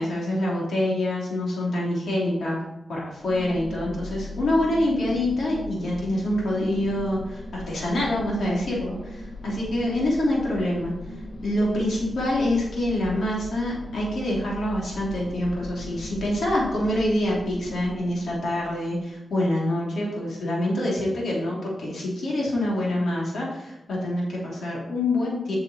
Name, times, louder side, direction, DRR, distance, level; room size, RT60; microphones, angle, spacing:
voice 1, 0.0-2.6 2.9-10.9 11.4-25.6, left 1 dB, 85° left, -4 dB, 3.3 m, -26 dB
sound 1, 3.2-19.1, left 2 dB, 55° left, 2.2 m, -38 dB
8.0 x 7.0 x 4.4 m, 0.95 s
cardioid pair, 75°, 0 cm